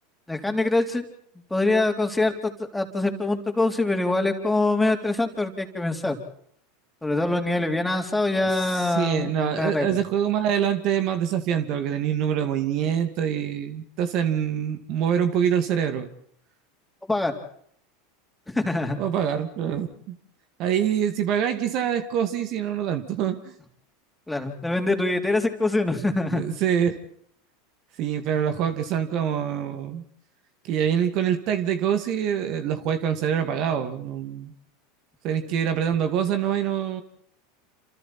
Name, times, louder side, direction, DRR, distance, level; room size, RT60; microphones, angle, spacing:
voice 1, 0.3-1.0 1.5-6.2 7.0-9.9 17.1-17.3 18.5-19.0 24.3-26.4, left 2 dB, 5° left, 4 dB, 3.8 m, -24 dB
voice 2, 8.4-16.1 19.0-20.2 20.6-23.5 26.3-27.0 28.0-30.0 30.6-34.5 35.2-37.0, right 9 dB, 55° right, 9 dB, 2.4 m, -25 dB
28.5 x 27.0 x 4.5 m, 0.66 s
hypercardioid pair, 100°, 0 cm